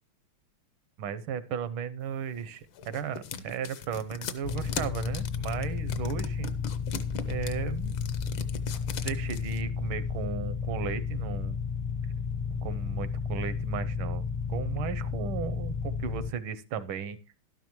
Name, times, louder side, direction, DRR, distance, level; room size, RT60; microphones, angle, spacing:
voice 1, 1.0-6.5 7.3-8.0 9.0-11.6 12.6-17.2, right 7 dB, 75° right, 14 dB, 1.6 m, -35 dB
sound 1, 2.4-9.6, left 6 dB, 70° left, 1.6 m, -38 dB
sound 2, 4.4-16.3, left 5 dB, 40° left, 0.6 m, -32 dB
12.0 x 10.5 x 3.0 m, 0.31 s
omnidirectional pair, 2.3 m